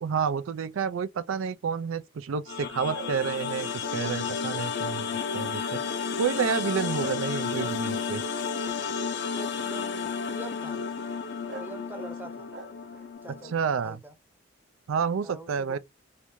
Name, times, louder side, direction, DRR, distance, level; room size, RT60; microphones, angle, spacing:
voice 1, 0.0-5.1 5.3-5.8 6.2-8.2 13.4-14.0 14.9-15.8, right 6 dB, 85° right, 0.4 m, -29 dB
sound 1, 2.5-13.5, left 5 dB, 60° left, 0.5 m, -32 dB
sound 2, 2.9-5.5 6.0-6.3 6.9-9.2 9.6-10.1 11.0-11.2 11.5-11.8 12.2-13.1, right 2 dB, 55° right, 0.8 m, -46 dB
voice 2, 7.5-8.0 9.3-10.8 11.6-12.5 13.2-14.1 15.2-15.8, right 1 dB, 10° right, 0.7 m, -44 dB
3.3 x 2.5 x 3.0 m
head